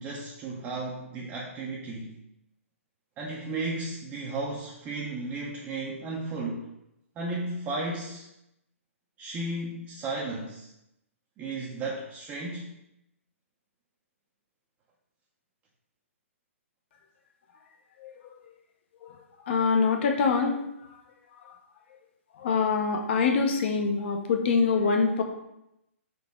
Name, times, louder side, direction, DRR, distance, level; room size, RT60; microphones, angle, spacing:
voice 1, 0.0-2.2 3.2-6.7 7.2-8.3 9.2-10.7 11.4-12.7, right 2 dB, 20° right, -3 dB, 0.5 m, -34 dB
voice 2, 19.5-20.5 22.4-25.2, left 5 dB, 50° left, 3 dB, 0.7 m, -24 dB
3.9 x 2.8 x 3.6 m, 0.83 s
hypercardioid pair, 135°, 8 cm